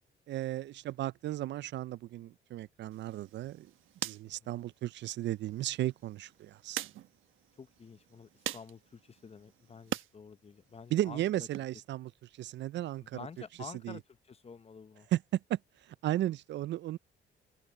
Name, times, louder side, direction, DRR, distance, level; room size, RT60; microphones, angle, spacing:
voice 1, 0.3-3.7 4.0-6.8 10.9-12.1 12.4-13.2 13.8-14.0 15.1-15.2 15.5-15.6 16.0-17.0, right 14 dB, 65° right, 0.4 m, -34 dB
sound 1, 2.9-10.1 10.5-11.6, right 13 dB, 85° right, 1.2 m, -44 dB
voice 2, 4.3-4.6 7.6-11.6 13.0-15.1, left 5 dB, 30° left, 0.8 m, -50 dB
open air
cardioid pair, 90°, 20 cm